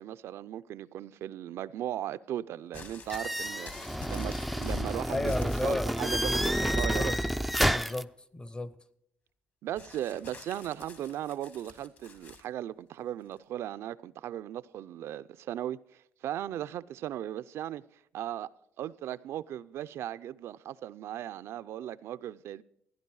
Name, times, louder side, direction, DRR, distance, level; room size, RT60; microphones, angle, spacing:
voice 1, 0.0-3.7 4.1-7.1 9.6-17.8 18.1-18.5 18.8-22.6, right 12 dB, 70° right, 0.4 m, -37 dB
sound 1, 2.7-6.8 7.1-7.7 9.8-12.5 13.3-13.4, left 4 dB, 45° left, 1.9 m, -47 dB
sound 2, 3.1-8.0, equal, ahead, 0.3 m, -30 dB
voice 2, 5.1-7.2 7.7-8.7, left 2 dB, 20° left, 0.7 m, -35 dB
15.0 x 10.5 x 4.7 m
cardioid pair, 90°, 5 cm